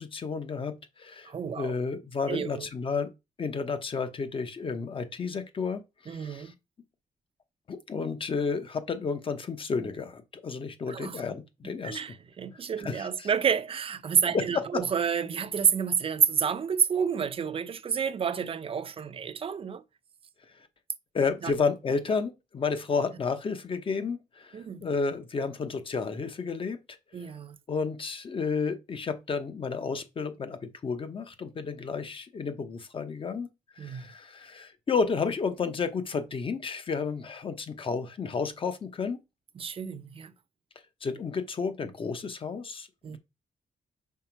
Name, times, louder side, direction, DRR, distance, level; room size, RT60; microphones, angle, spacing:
voice 1, 0.0-3.1 3.4-6.5 7.7-12.0 12.8-13.3 14.3-14.8 20.6-20.7 21.1-27.3 27.7-33.5 33.8-39.2 41.0-43.2, left 5 dB, 35° left, 0.9 m, -32 dB
voice 2, 1.3-1.7 2.3-2.7 6.1-6.5 10.9-11.2 11.8-19.8 21.4-21.5 24.5-24.8 27.1-27.6 33.8-34.1 39.6-40.3 43.0-43.2, right 7 dB, 40° right, 0.5 m, -29 dB
5.7 x 4.9 x 4.5 m
wide cardioid pair, 170°, 15 cm